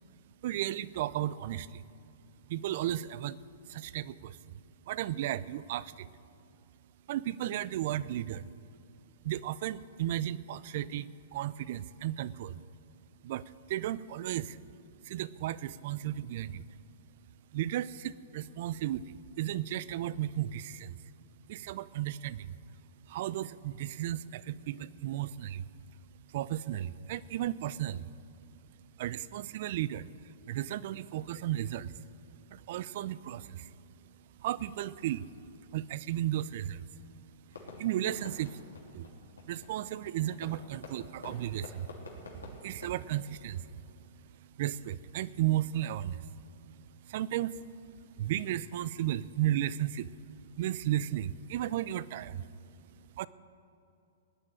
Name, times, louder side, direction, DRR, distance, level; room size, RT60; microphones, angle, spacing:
voice 1, 0.4-1.8 2.5-3.4 3.7-4.6 4.9-6.1 7.1-8.5 9.2-12.5 13.2-14.6 15.0-16.7 17.5-21.0 21.5-22.6 23.1-25.7 26.3-28.1 29.0-32.0 32.5-33.7 34.4-35.3 35.7-37.0 37.8-38.6 38.9-39.1 39.5-41.9 42.2-44.1 44.6-46.3 46.7-47.7 48.2-50.1 50.5-52.5 53.2-53.3, right 12 dB, 55° right, 19 dB, 0.5 m, -34 dB
Fireworks, 37.5-44.0, left 3 dB, 90° left, 3.0 m, -49 dB
16.5 x 9.9 x 8.9 m, 2.8 s
hypercardioid pair, 120°, 0 cm